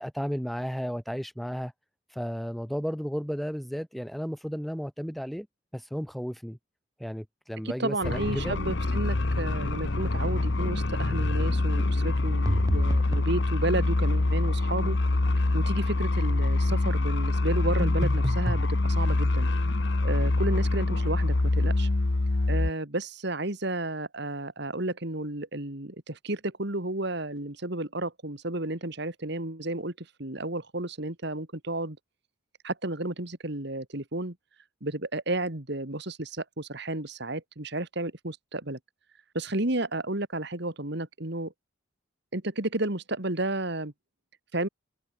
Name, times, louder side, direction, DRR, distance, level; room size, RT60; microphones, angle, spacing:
voice 1, 0.0-1.7 2.1-5.5 5.7-6.6 7.0-8.6, equal, ahead, 4.8 m, -33 dB
voice 2, 7.6-15.0 15.5-19.5 20.0-21.9 22.5-32.0 32.6-34.4 34.8-38.8 39.3-41.5 42.3-43.9 44.5-44.7, right 2 dB, 55° right, 2.3 m, -32 dB
sound 1, 8.0-22.7, left 2 dB, 55° left, 1.0 m, -25 dB
sound 2, 12.5-13.4 17.8-18.7, equal, 15° right, 1.6 m, -30 dB
head